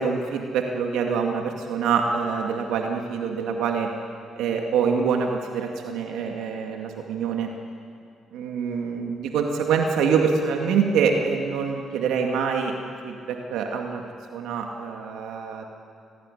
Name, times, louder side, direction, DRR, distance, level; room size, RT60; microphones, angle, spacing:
voice 1, 0.0-3.9 4.4-7.5 8.3-14.0 14.3-15.6, right 6 dB, 90° right, 2 dB, 2.2 m, -25 dB
26.5 x 19.0 x 10.0 m, 2.4 s
cardioid pair, 90°, 0 cm